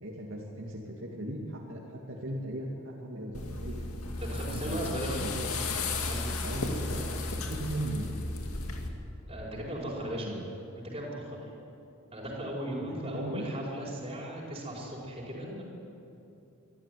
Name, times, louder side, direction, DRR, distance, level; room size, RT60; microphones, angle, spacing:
voice 1, 0.0-3.8 4.4-5.5 6.4-7.1 7.3-8.2 9.6-10.5 12.7-13.5, right 1 dB, 60° right, -3 dB, 2.6 m, -38 dB
sound 1, 3.3-8.9, left 3 dB, 80° left, 2.2 m, -34 dB
voice 2, 4.2-5.3 6.0-6.3 9.3-10.4 10.8-11.4 12.1-15.6, right 1 dB, 25° right, -3 dB, 5.0 m, -37 dB
24.0 x 13.5 x 9.5 m, 2.8 s
head